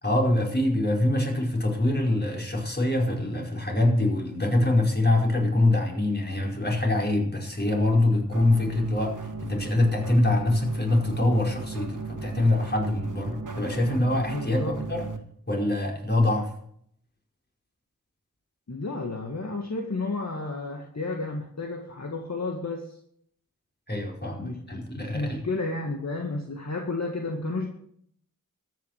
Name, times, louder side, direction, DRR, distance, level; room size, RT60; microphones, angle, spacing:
voice 1, 0.0-9.1 9.4-15.1 15.5-16.5 23.9-25.4, left 1 dB, 30° left, 0 dB, 5.0 m, -24 dB
sound 1, 8.3-15.2, right 3 dB, 70° right, 1.9 m, -35 dB
voice 2, 14.3-14.8 18.7-23.0 24.4-24.6 24.9-27.7, left 3 dB, 55° left, 1 dB, 2.1 m, -32 dB
13.5 x 9.6 x 6.7 m, 0.65 s
wide cardioid pair, 50°, 32 cm